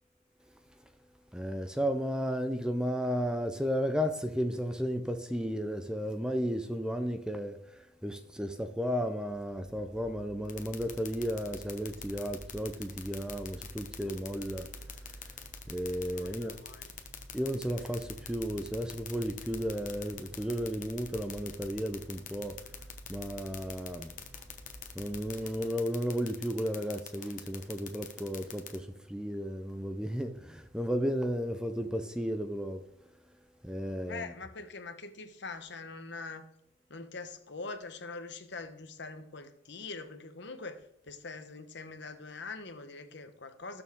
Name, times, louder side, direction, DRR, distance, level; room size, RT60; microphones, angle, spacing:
voice 1, 1.3-14.7 15.7-16.6 17.3-22.6 23.1-24.1 24.9-32.8 33.6-34.3, equal, 5° right, 0.6 m, -33 dB
sound 1, 10.5-28.8, left 10 dB, 40° left, 1.2 m, -43 dB
sound 2, 12.9-25.5, right 1 dB, 15° left, 1.6 m, -51 dB
voice 2, 14.5-14.9 16.1-17.0 34.1-36.5 36.9-43.8, left 3 dB, 60° left, 1.1 m, -43 dB
18.5 x 6.9 x 3.7 m
head